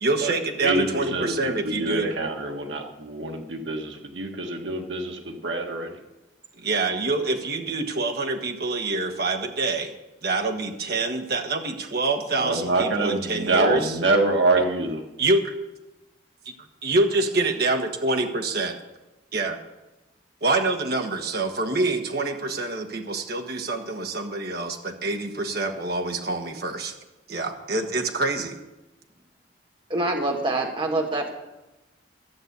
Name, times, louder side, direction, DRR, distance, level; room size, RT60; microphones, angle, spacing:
voice 1, 0.0-2.1 6.6-9.9 10.2-13.9 14.6-14.7 15.2-15.5 16.8-18.8 19.3-19.6 20.4-26.9 27.3-28.6, right 2 dB, 55° right, 3 dB, 1.4 m, -26 dB
voice 2, 0.6-6.0 12.4-15.0, right 2 dB, 90° right, 3 dB, 1.5 m, -25 dB
voice 3, 29.9-31.3, right 2 dB, 25° right, 1 dB, 1.4 m, -25 dB
13.0 x 6.8 x 8.1 m, 1.0 s
head